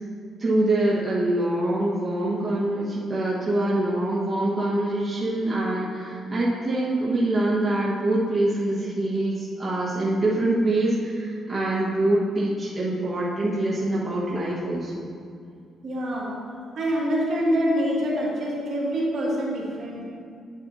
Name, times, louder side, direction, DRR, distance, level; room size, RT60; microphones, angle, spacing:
voice 1, 0.4-14.9, right 1 dB, 25° right, -7 dB, 1.4 m, -24 dB
voice 2, 15.8-16.3 16.7-20.0, equal, 55° right, -5 dB, 2.2 m, -25 dB
8.9 x 8.7 x 2.8 m, 2.2 s
cardioid pair, 90°, 0 cm